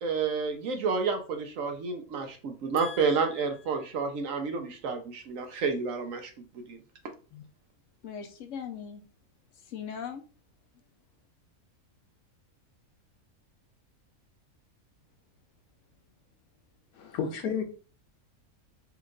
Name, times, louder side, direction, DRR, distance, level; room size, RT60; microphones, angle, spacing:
voice 1, 0.0-6.8, right 5 dB, 70° right, 1.0 m, -30 dB
voice 2, 2.8-3.3 7.3-7.4 8.0-9.0 9.7-10.2, left 7 dB, 70° left, 0.8 m, -40 dB
voice 3, 16.9-17.6, left 6 dB, 90° left, 1.3 m, -31 dB
4.4 x 2.4 x 3.7 m
omnidirectional pair, 1.5 m